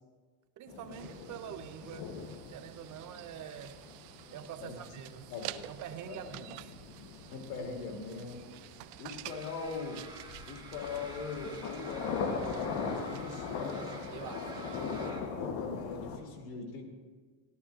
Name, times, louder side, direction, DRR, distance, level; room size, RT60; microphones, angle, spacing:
voice 1, 0.6-2.2 2.5-3.8 4.3-5.3 5.7-6.7 14.1-14.8, right 10 dB, 40° right, 10 dB, 0.7 m, -45 dB
sound 1, 0.7-16.2, left 5 dB, 50° left, 1.3 m, -41 dB
sound 2, 0.9-15.1, right 17 dB, 75° right, 0.5 m, -50 dB
voice 2, 5.3-5.7 6.1-6.3 7.2-8.5 9.0-10.0 10.5-13.9 15.4-16.8, left 4 dB, 85° left, 1 dB, 2.2 m, -41 dB
sound 3, 9.2-15.2, right 2 dB, 10° right, 1.4 m, -50 dB
14.5 x 12.0 x 2.5 m, 1.4 s
supercardioid pair, 120°, 48 cm